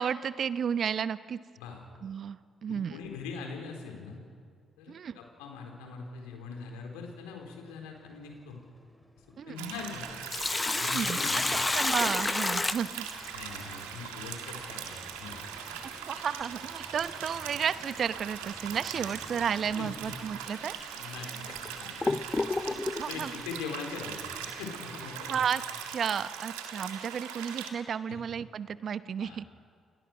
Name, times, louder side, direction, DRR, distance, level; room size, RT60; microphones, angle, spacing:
voice 1, 0.0-1.4 2.0-3.0 4.9-5.2 9.4-9.7 10.7-11.2 11.7-13.1 16.1-20.8 23.0-23.3 25.3-25.6 25.9-29.4, right 7 dB, 55° right, 15 dB, 0.8 m, -32 dB
voice 2, 2.7-4.2 4.8-8.6 9.4-10.1 10.7-11.6 13.3-15.5 19.8-20.2 20.9-22.3 22.6-22.8 23.0-25.5 28.1-28.2 29.2-29.4, left 5 dB, 80° left, 2 dB, 4.2 m, -42 dB
sound 1, 5.4-19.9, equal, ahead, 3.9 m, -56 dB
sound 2, 9.6-27.7, right 8 dB, 85° right, 2.0 m, -41 dB
Sink (filling or washing), 10.0-13.6 16.0-16.1 18.0-18.2 18.7-18.8 19.6-19.7 20.4-20.5 21.2-23.1, left 3 dB, 25° left, 0.7 m, -30 dB
29.0 x 21.5 x 6.2 m, 2.1 s
hypercardioid pair, 45°, 0 cm